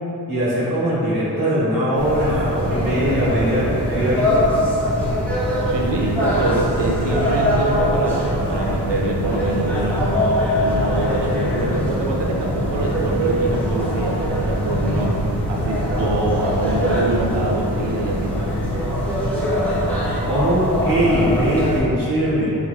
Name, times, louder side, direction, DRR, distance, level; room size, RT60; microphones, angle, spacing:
voice 1, 0.3-4.4 20.2-22.6, equal, 50° right, -9 dB, 1.4 m, -21 dB
sound 1, 1.9-21.8, equal, 5° left, 0.8 m, -22 dB
voice 2, 5.6-10.1 10.6-18.5, right 2 dB, 80° right, -1 dB, 0.7 m, -25 dB
5.0 x 4.5 x 2.3 m, 3.0 s
wide cardioid pair, 135°, 42 cm